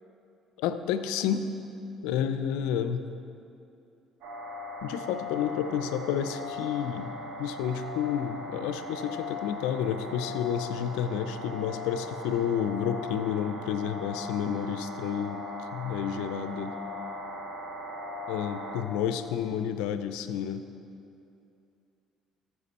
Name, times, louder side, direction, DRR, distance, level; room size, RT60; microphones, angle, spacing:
voice 1, 0.6-1.5 2.0-3.0 4.8-7.1 7.4-15.4 15.7-16.8 18.3-20.6, left 8 dB, 80° left, 10 dB, 0.4 m, -30 dB
sound 1, 4.2-18.8, left 2 dB, 75° right, 1.3 m, -39 dB
14.0 x 4.8 x 4.2 m, 2.6 s
supercardioid pair, 65°, 0 cm